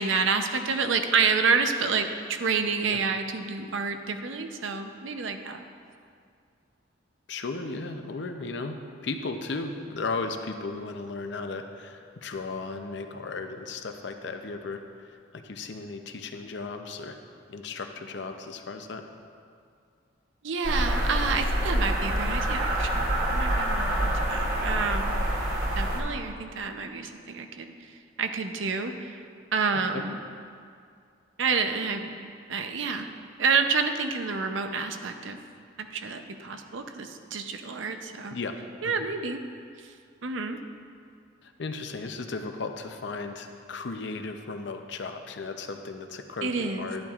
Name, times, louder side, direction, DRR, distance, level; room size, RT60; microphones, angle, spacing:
voice 1, 0.0-5.6 20.4-25.1 25.8-27.7 28.2-29.2 29.5-30.2 31.4-32.2 32.5-33.1 33.4-35.4 35.8-38.4 38.8-39.4 40.2-40.6 46.4-46.9, right 5 dB, 75° right, 7 dB, 0.6 m, -28 dB
voice 2, 7.3-8.8 9.0-17.2 17.5-19.0 29.9-30.0 38.3-38.6 38.8-39.0 41.4-47.1, left 3 dB, 60° left, 6 dB, 0.6 m, -35 dB
sound 1, 20.6-26.0, right 1 dB, 45° right, 1.2 m, -26 dB
11.0 x 10.5 x 2.4 m, 2.3 s
head